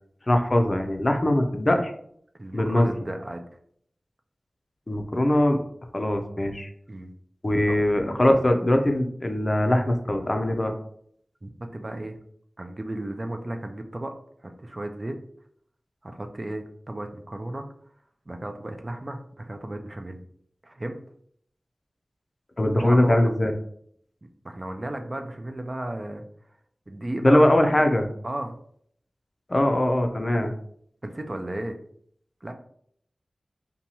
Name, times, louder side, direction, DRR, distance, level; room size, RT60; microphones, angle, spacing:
voice 1, 0.3-1.9 2.5-2.9 4.9-5.6 5.9-6.7 7.4-10.7 22.6-23.5 27.2-28.1 29.5-30.5, left 1 dB, 40° left, 5 dB, 0.4 m, -21 dB
voice 2, 2.4-3.4 6.9-7.1 7.7-7.8 11.4-12.2 12.6-14.1 14.4-15.2 16.0-17.6 18.3-20.2 20.6-21.0 22.7-23.4 24.4-26.3 26.9-27.6 28.2-28.5 31.0-31.8 32.4-32.5, right 1 dB, 35° right, 5 dB, 0.3 m, -34 dB
2.8 x 2.2 x 2.7 m, 0.66 s
wide cardioid pair, 60°, 0 cm